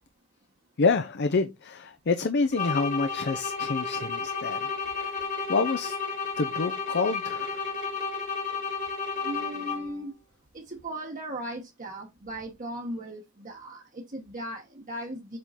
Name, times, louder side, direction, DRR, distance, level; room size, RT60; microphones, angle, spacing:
voice 1, 0.8-4.7 5.0-5.1 5.5-6.0 6.4-7.6, left 4 dB, 55° left, 0.6 m, -27 dB
sound 1, 2.5-10.0, left 5 dB, 35° left, 1.6 m, -32 dB
voice 2, 9.2-10.1 10.5-15.4, right 1 dB, 40° right, 1.1 m, -37 dB
7.6 x 3.6 x 4.2 m
head